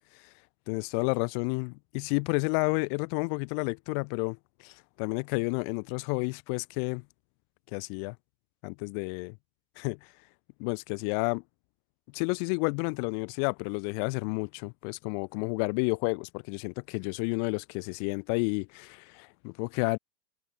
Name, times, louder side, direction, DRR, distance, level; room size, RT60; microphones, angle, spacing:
voice 1, 0.7-7.0 7.7-8.2 8.6-9.4 9.8-10.0 10.6-11.4 12.1-20.0, left 40 dB or more, 45° left, 7.7 m, -31 dB
supercardioid pair, 160°, 20 cm